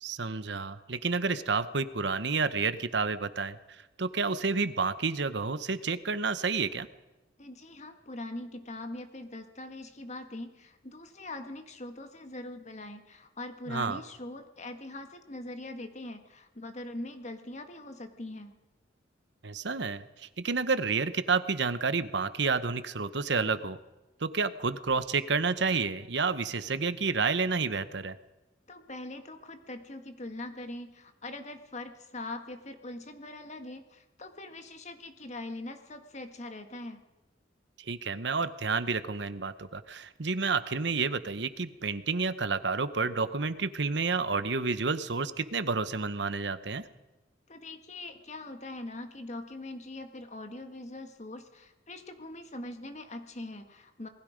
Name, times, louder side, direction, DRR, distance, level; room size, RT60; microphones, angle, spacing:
voice 1, 0.0-3.6 4.0-6.9 13.7-14.0 19.4-23.8 24.2-28.2 37.9-46.9, right 4 dB, 65° right, 13 dB, 1.0 m, -30 dB
voice 2, 7.4-18.6 28.7-37.0 47.5-54.1, left 2 dB, 40° left, 7 dB, 1.6 m, -42 dB
27.5 x 20.0 x 5.2 m, 1.0 s
head